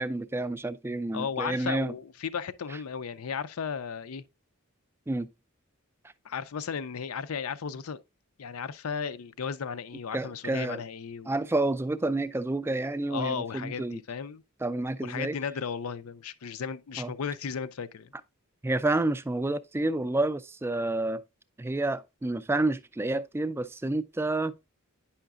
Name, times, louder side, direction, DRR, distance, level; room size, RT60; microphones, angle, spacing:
voice 1, 0.0-1.9 5.1-5.3 10.1-10.8 11.3-14.0 14.6-15.4 17.0-17.1 18.6-21.2 21.6-24.5, right 2 dB, 10° right, 0.3 m, -29 dB
voice 2, 1.1-4.2 6.2-8.0 8.4-11.3 13.1-14.4 15.0-18.1, left 6 dB, 85° left, 0.5 m, -35 dB
9.1 x 5.7 x 2.4 m
head